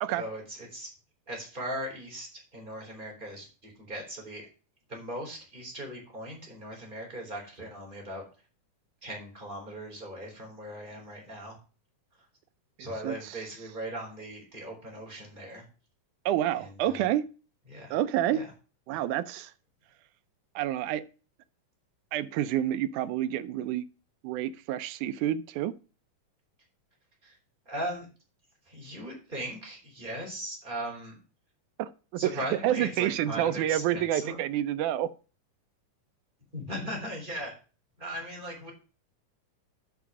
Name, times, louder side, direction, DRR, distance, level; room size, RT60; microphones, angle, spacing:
voice 1, 0.2-0.9 1.3-4.4 4.9-8.2 9.0-11.6 12.8-15.6 16.6-17.0 17.7-18.0 18.3-18.5 27.2-27.3 27.7-28.1 28.7-31.2 32.2-34.4 36.5-37.5 38.0-38.7, right 1 dB, 15° right, 3.6 m, -38 dB
voice 2, 12.8-13.5 16.3-17.2 17.9-18.4 18.9-19.5 20.6-21.0 22.1-23.8 24.2-25.7 31.8-35.1, right 12 dB, 80° right, 1.9 m, -29 dB
9.2 x 5.6 x 6.1 m
omnidirectional pair, 3.7 m